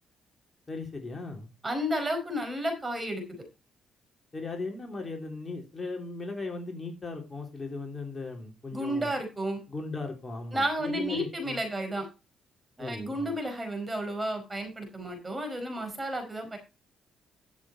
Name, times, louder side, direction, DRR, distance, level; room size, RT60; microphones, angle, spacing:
voice 1, 0.7-1.5 4.3-9.1 9.7-11.6 12.8-13.3, left 3 dB, 25° left, 2 dB, 3.4 m, -37 dB
voice 2, 1.6-3.4 8.7-9.6 10.5-12.1 12.8-16.6, equal, 20° right, 5 dB, 4.8 m, -32 dB
12.0 x 7.3 x 4.3 m, 0.27 s
cardioid pair, 90°, 0 cm